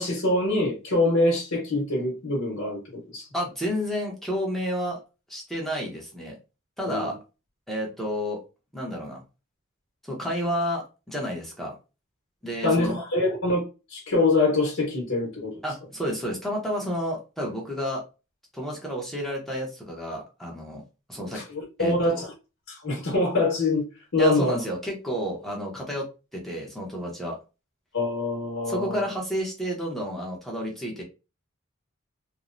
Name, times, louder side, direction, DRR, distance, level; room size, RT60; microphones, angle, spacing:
voice 1, 0.0-3.3 6.8-7.1 12.6-15.6 21.3-22.3 22.7-23.8 24.1-24.6 27.9-29.1, left 2 dB, 80° left, 1.0 m, -25 dB
voice 2, 3.3-5.0 5.3-6.4 6.8-7.2 7.7-8.4 8.7-9.2 10.0-11.7 12.4-13.0 15.6-18.0 18.5-20.8 21.1-21.4 21.8-22.2 24.2-26.1 26.3-27.4 28.7-31.0, equal, ahead, 0.6 m, -30 dB
3.0 x 2.0 x 2.4 m
head